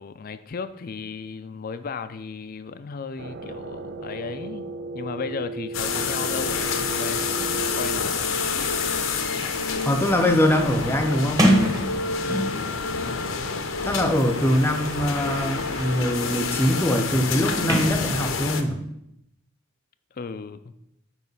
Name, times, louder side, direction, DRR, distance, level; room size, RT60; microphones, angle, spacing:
voice 1, 0.0-8.3 12.2-13.6 20.1-20.7, left 5 dB, 45° left, 11 dB, 0.4 m, -36 dB
sound 1, 3.2-8.0, right 2 dB, 55° right, 0.5 m, -34 dB
sound 2, 5.7-18.6, left 5 dB, 75° left, 0.8 m, -28 dB
Sliding door, 7.4-7.5 7.7-12.8 13.7-18.7, equal, 20° right, 1.1 m, -29 dB
voice 2, 9.9-11.4 13.9-18.8, left 1 dB, 10° left, 6 dB, 0.7 m, -23 dB
9.2 x 3.2 x 5.4 m, 0.79 s
head